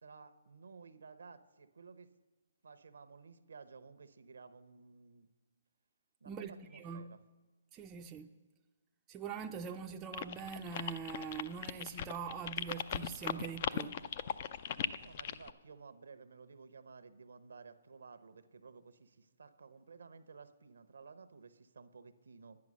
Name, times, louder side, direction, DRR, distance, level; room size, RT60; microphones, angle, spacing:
voice 1, 0.0-2.1 2.6-5.3 6.2-7.2 15.0-22.6, right 5 dB, 75° right, 0.8 m, -55 dB
voice 2, 6.3-7.1 7.7-8.3 9.1-14.0, right 6 dB, 20° right, 0.5 m, -43 dB
sound 1, 10.1-15.5, left 9 dB, 45° left, 0.5 m, -38 dB
10.5 x 9.7 x 6.3 m
hypercardioid pair, 145°, 0 cm